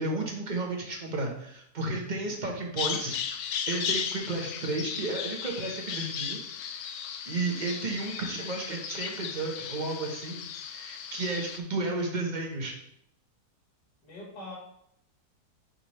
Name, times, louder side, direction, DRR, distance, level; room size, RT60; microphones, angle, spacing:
voice 1, 0.0-6.9 7.3-12.8, right 2 dB, 30° right, 1 dB, 1.0 m, -33 dB
voice 2, 2.0-2.4 7.3-7.6 14.0-14.6, left 1 dB, 90° left, -4 dB, 2.8 m, -45 dB
Bird vocalization bird call bird song, 2.8-11.6, left 7 dB, 70° left, 1.0 m, -36 dB
6.3 x 5.3 x 3.4 m, 0.72 s
omnidirectional pair, 1.8 m